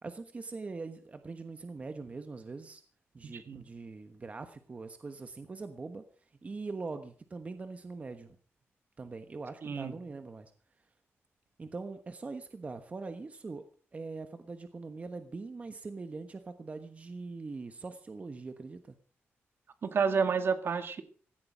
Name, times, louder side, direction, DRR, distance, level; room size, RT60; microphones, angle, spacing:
voice 1, 0.0-2.8 3.1-6.0 6.4-8.4 9.0-10.5 11.6-13.6 13.9-18.9, right 3 dB, 30° right, 8 dB, 1.2 m, -42 dB
voice 2, 3.3-3.6 9.6-10.0 19.8-21.0, right 5 dB, 55° right, 9 dB, 1.9 m, -30 dB
16.5 x 15.5 x 5.1 m, 0.42 s
wide cardioid pair, 160°, 5 cm